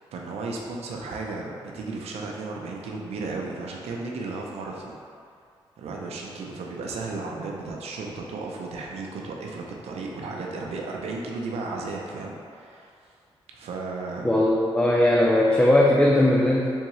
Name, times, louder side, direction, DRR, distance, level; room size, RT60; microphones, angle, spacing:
voice 1, 0.1-5.0 5.8-12.9 13.5-14.4, right 3 dB, 80° right, -1 dB, 0.6 m, -34 dB
voice 2, 14.2-16.7, left 1 dB, 10° left, -3 dB, 0.4 m, -19 dB
3.6 x 3.6 x 3.1 m, 2.3 s
cardioid pair, 60°, 10 cm